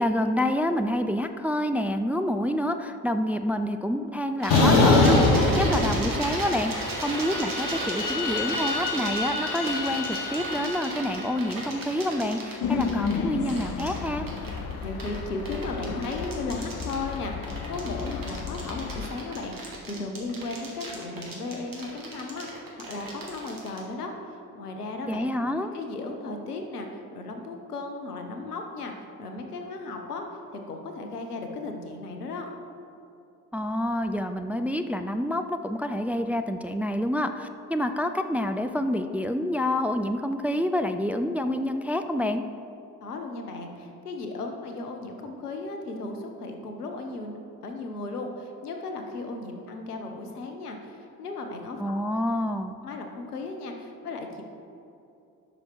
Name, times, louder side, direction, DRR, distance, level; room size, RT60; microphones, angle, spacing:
voice 1, 0.0-14.3 25.1-25.7 33.5-42.4 51.8-52.7, left 1 dB, 5° right, 8 dB, 0.3 m, -28 dB
sound 1, 4.4-23.8, right 2 dB, 50° right, 2.3 m, -35 dB
sound 2, 4.5-6.5 6.8-11.1, left 2 dB, 70° left, 1.4 m, -24 dB
sound 3, 12.6-19.1, left 6 dB, 50° left, 0.8 m, -33 dB
voice 2, 14.8-25.3 25.7-30.2 30.5-32.5 43.0-52.0 52.8-54.4, left 3 dB, 90° left, 4 dB, 0.8 m, -36 dB
12.0 x 6.0 x 4.5 m, 2.7 s
figure-of-eight pair, 40°, 45 cm